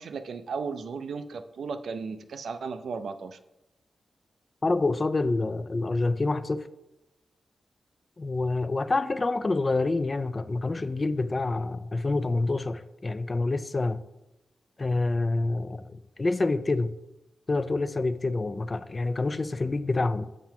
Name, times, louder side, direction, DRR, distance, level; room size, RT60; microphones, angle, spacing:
voice 1, 0.0-3.4, right 5 dB, 75° right, 0.4 m, -35 dB
voice 2, 4.6-6.7 8.2-14.0 14.8-16.9 17.5-20.3, left 3 dB, 30° left, 0.3 m, -27 dB
7.4 x 2.9 x 5.6 m
wide cardioid pair, 105°, 0 cm